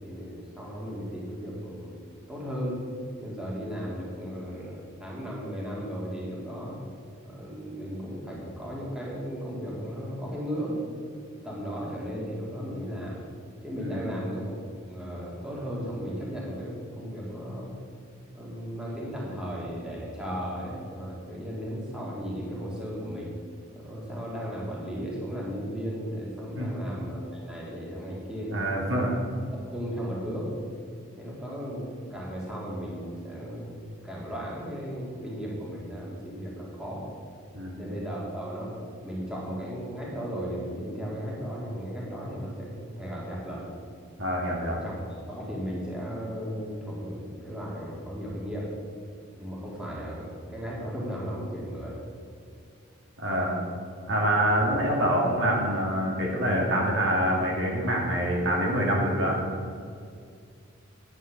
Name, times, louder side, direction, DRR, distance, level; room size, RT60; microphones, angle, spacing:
voice 1, 0.0-2.0 2.3-2.8 3.2-6.8 7.2-10.8 11.1-13.2 13.6-14.6 14.9-17.7 18.3-23.4 23.8-28.7 29.3-29.4 29.7-30.5 31.2-37.1 37.8-38.7 39.0-43.7 44.7-48.7 49.4-52.0 54.3-54.7, equal, 5° right, -5 dB, 2.2 m, -35 dB
voice 2, 13.8-14.2 26.6-26.7 28.5-29.1 37.5-37.8 44.2-44.8 53.2-53.6 54.1-59.4, equal, 60° right, -2 dB, 2.4 m, -26 dB
10.5 x 8.3 x 5.9 m, 2.3 s
head